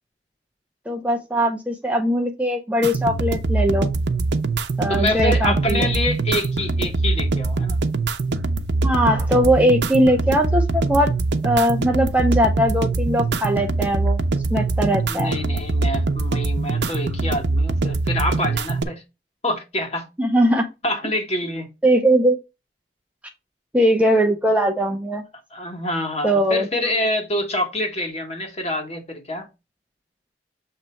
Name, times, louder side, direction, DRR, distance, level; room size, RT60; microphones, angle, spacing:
voice 1, 0.9-3.9 4.8-5.9 8.8-11.1 11.4-14.2 14.5-15.3 20.2-20.7 21.8-22.4 23.7-25.2 26.2-26.7, equal, 10° right, 0.7 m, -20 dB
sound 1, 2.8-18.8, right 3 dB, 75° right, 0.7 m, -23 dB
voice 2, 4.9-7.8 15.0-19.0 19.4-20.1 20.8-21.7 25.5-29.5, left 1 dB, 35° left, 1.6 m, -26 dB
7.3 x 3.1 x 4.4 m
head